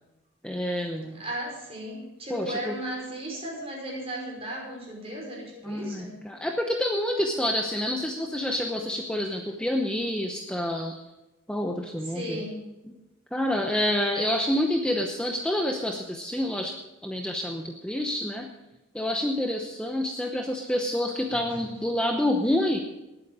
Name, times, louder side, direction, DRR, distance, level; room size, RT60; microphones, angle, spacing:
voice 1, 0.4-1.2 2.3-2.8 5.6-11.0 11.5-12.4 12.8-12.9 13.3-16.8 17.0-18.5 18.9-22.8, left 1 dB, 5° left, 2 dB, 0.8 m, -28 dB
voice 2, 1.1-6.2 12.0-12.6 21.3-21.8, right 1 dB, 25° right, -2 dB, 5.5 m, -36 dB
19.0 x 8.9 x 4.9 m, 1.0 s
head